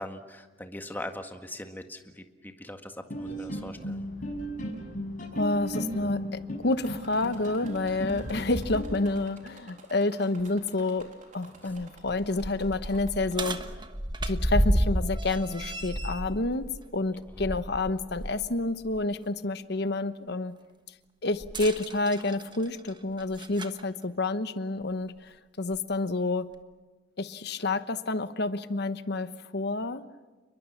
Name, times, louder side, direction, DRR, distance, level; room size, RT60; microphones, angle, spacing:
voice 1, 0.0-4.0, left 1 dB, 10° left, 6 dB, 1.7 m, -41 dB
sound 1, 3.1-8.8, equal, 45° left, 6.8 m, -35 dB
voice 2, 5.3-11.1 11.3-13.6 14.2-20.5 21.2-26.5 27.2-30.0, left 2 dB, 65° left, 12 dB, 1.1 m, -29 dB
sound 2, 6.8-13.9 14.3-15.0 15.8-15.9 16.3-16.4, right 3 dB, 45° right, 3.7 m, -53 dB
sound 3, 10.4-10.5 11.0-11.1 11.7-18.4 18.8-19.0 21.4-23.8 24.8-24.9 25.7-25.8, right 1 dB, 25° right, 1.3 m, -31 dB
29.5 x 22.0 x 7.3 m, 1.2 s
head